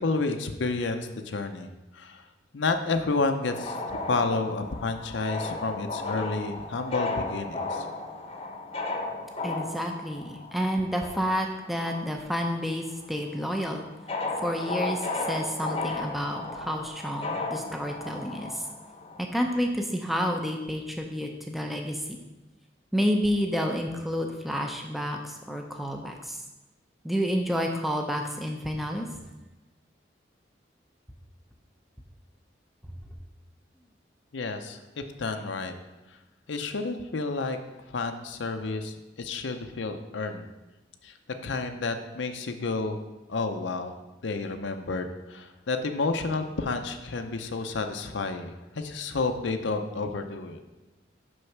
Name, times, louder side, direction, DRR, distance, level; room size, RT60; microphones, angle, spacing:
voice 1, 0.0-1.7 1.9-2.2 2.5-3.8 4.1-7.9 34.3-35.7 36.5-37.6 37.9-40.5 41.0-41.1 41.4-43.0 43.3-43.9 44.2-50.6, left 3 dB, 80° left, 6 dB, 0.6 m, -30 dB
sound 1, 3.5-12.4 12.7-19.2, left 3 dB, 30° left, 0.8 m, -35 dB
voice 2, 9.4-13.8 14.4-18.6 19.2-22.0 22.9-26.4 27.0-29.1, equal, ahead, 2 dB, 0.6 m, -29 dB
6.4 x 5.3 x 5.9 m, 1.1 s
head